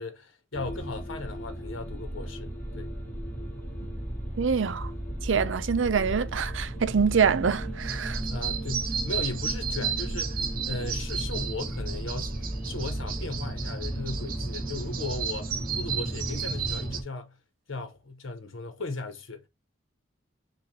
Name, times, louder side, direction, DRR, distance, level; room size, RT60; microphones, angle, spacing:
voice 1, 0.0-2.9 5.3-5.5 8.3-17.4 17.7-19.4, left 3 dB, 75° left, 1.0 m, -37 dB
sound 1, 0.5-17.0, right 1 dB, 10° left, 1.4 m, -34 dB
voice 2, 4.4-4.9 5.2-8.2, right 6 dB, 65° right, 0.5 m, -25 dB
sound 2, 7.8-17.0, right 7 dB, 45° right, 0.8 m, -34 dB
6.0 x 2.5 x 3.1 m
head